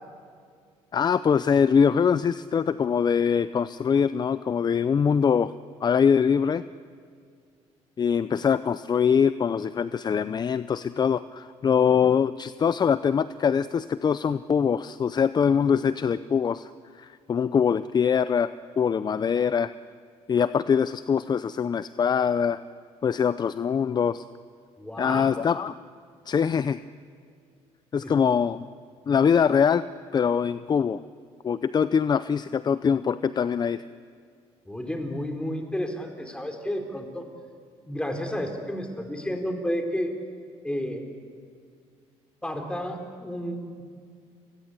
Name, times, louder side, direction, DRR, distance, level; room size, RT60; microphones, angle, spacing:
voice 1, 0.9-5.5 5.8-6.6 8.0-16.7 17.0-18.5 18.8-19.7 20.3-22.6 23.0-24.2 25.0-25.7 26.3-26.8 27.9-28.7 29.1-29.8 30.1-31.0 31.4-33.8, left 7 dB, 35° left, 14 dB, 0.6 m, -23 dB
voice 2, 24.8-25.3 28.0-28.1 34.7-37.3 37.9-40.1 40.6-41.1 42.4-43.8, equal, 10° left, 5 dB, 4.2 m, -31 dB
29.5 x 20.0 x 8.3 m, 2.2 s
cardioid pair, 90°, 12 cm